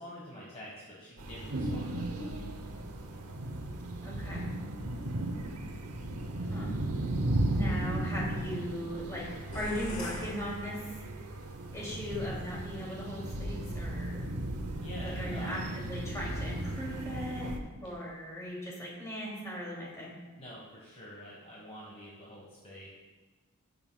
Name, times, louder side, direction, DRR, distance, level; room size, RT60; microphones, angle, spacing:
voice 1, 0.0-2.6 14.8-15.7 20.4-22.9, equal, 30° left, -5 dB, 1.4 m, -47 dB
sound 1, 1.2-17.6, right 1 dB, 85° right, 0.9 m, -35 dB
voice 2, 4.0-4.5 6.5-6.7 7.5-10.9 11.7-14.2 15.0-17.5 17.8-20.1, equal, 15° left, -5 dB, 2.5 m, -38 dB
sound 2, 9.5-11.4, left 2 dB, 70° left, 1.2 m, -42 dB
14.5 x 6.9 x 2.3 m, 1.3 s
head